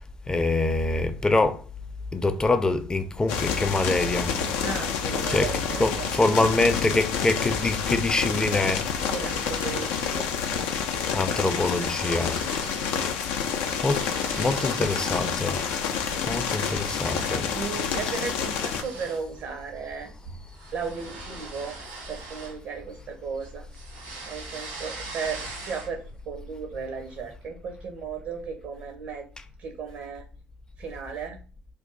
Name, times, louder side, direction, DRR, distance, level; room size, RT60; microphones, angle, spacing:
voice 1, 0.3-1.6 2.1-4.3 5.3-5.5 5.8-8.9 11.1-12.5 13.1-13.2 13.8-15.6 16.2-17.5, left 2 dB, 20° left, 0.5 m, -25 dB
sound 1, 3.3-18.8, left 7 dB, 80° left, 0.4 m, -28 dB
voice 2, 4.6-6.3 9.1-10.3 13.4-13.8 17.5-20.1 20.7-21.8 22.1-23.7 24.2-29.3 29.6-30.3 30.8-31.4, right 6 dB, 65° right, 0.6 m, -35 dB
sound 2, 8.6-10.2 10.6-10.8 11.1-12.9 13.2-15.4 15.8-17.4 17.9-18.1 18.5-23.1 23.4-26.1, right 3 dB, 90° right, 1.1 m, -42 dB
2.6 x 2.2 x 3.8 m
hypercardioid pair, 65°, 4 cm